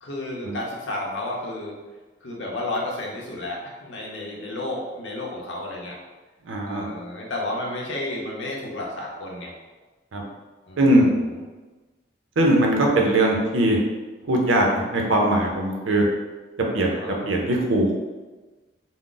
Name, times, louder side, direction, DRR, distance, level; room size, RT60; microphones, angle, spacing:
voice 1, 0.0-1.7 2.2-6.0 6.7-9.5 10.7-11.1 16.9-17.2, left 1 dB, 70° left, -2 dB, 0.6 m, -32 dB
voice 2, 6.4-6.9 10.1-10.2 10.8-11.0 12.4-13.8 14.3-16.1 16.7-16.9 17.3-17.9, right 1 dB, 85° right, 0 dB, 0.6 m, -20 dB
2.4 x 2.0 x 3.7 m, 1.2 s
head